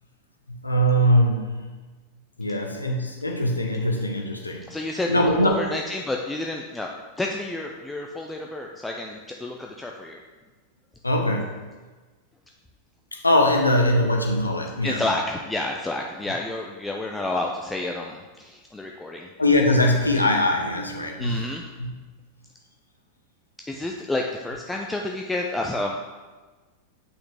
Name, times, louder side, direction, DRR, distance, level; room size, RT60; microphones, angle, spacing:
voice 1, 0.5-1.6 2.4-4.6 5.1-5.7 11.0-11.6 13.1-15.0 19.4-21.5 21.8-21.9, left 1 dB, 85° left, 1 dB, 0.9 m, -22 dB
voice 2, 4.7-5.1 5.4-6.9 7.2-10.2 14.8-19.3 21.2-21.6 23.7-26.0, left 2 dB, 10° left, 1 dB, 0.5 m, -30 dB
7.8 x 5.8 x 3.5 m, 1.3 s
figure-of-eight pair, 90°, 0 cm